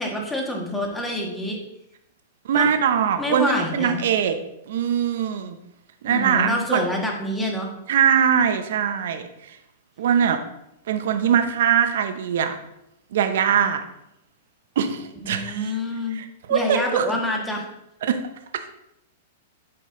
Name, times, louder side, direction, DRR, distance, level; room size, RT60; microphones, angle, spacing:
voice 1, 0.0-1.6 2.5-2.7 3.2-4.0 6.0-7.7 15.2-16.2 16.5-17.6, left 1 dB, 10° left, 0 dB, 1.7 m, -27 dB
voice 2, 2.5-4.4 4.7-5.6 6.0-6.8 7.9-9.6 10.0-10.4 10.9-12.6 13.1-13.9 14.8-15.7 16.1-17.1 18.0-18.2, right 8 dB, 70° right, 7 dB, 0.8 m, -22 dB
8.7 x 5.4 x 3.8 m, 0.83 s
hypercardioid pair, 130°, 0 cm